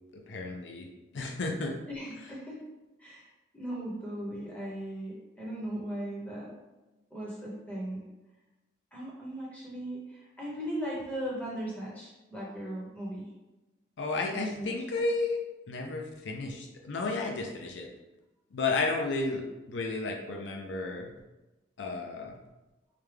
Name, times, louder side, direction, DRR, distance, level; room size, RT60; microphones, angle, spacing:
voice 1, 0.1-0.9 1.1-1.7 14.0-15.4 15.7-17.9 18.5-21.1 21.8-22.4, left 3 dB, 70° left, 2 dB, 0.5 m, -32 dB
voice 2, 1.9-2.6 3.0-6.5 7.1-8.0 8.9-13.3 14.3-14.7, right 1 dB, 10° left, -6 dB, 1.0 m, -38 dB
4.8 x 2.2 x 3.4 m, 1.1 s
head